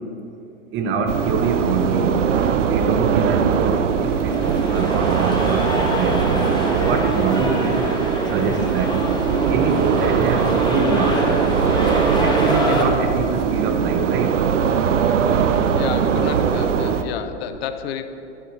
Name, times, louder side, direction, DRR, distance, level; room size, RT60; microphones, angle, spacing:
voice 1, 0.7-2.2 2.6-6.4 6.7-7.9 8.3-9.0 9.5-11.3 12.2-14.3, right 4 dB, 30° right, 5 dB, 1.0 m, -25 dB
sound 1, 1.1-17.0, right 7 dB, 85° right, 0.7 m, -20 dB
sound 2, 3.9-12.8, left 2 dB, 10° left, 1.2 m, -26 dB
voice 2, 15.7-18.1, left 9 dB, 60° left, 10 dB, 0.6 m, -30 dB
12.0 x 6.2 x 4.7 m, 2.9 s
hypercardioid pair, 110°, 36 cm